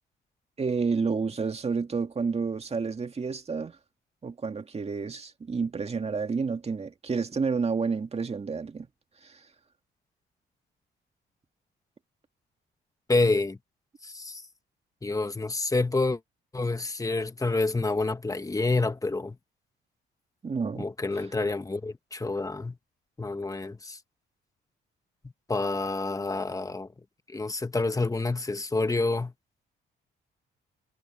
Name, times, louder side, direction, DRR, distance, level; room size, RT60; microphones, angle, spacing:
voice 1, 0.6-3.8 4.2-8.9 9.2-9.4 20.4-20.9, right 5 dB, 30° right, 2.2 m, -30 dB
voice 2, 13.1-13.6 14.0-14.4 15.0-16.2 16.5-19.4 20.8-22.8 23.2-24.0 25.5-26.9 27.3-29.3, left 3 dB, 15° left, 1.5 m, -28 dB
cardioid pair, 90°, 20 cm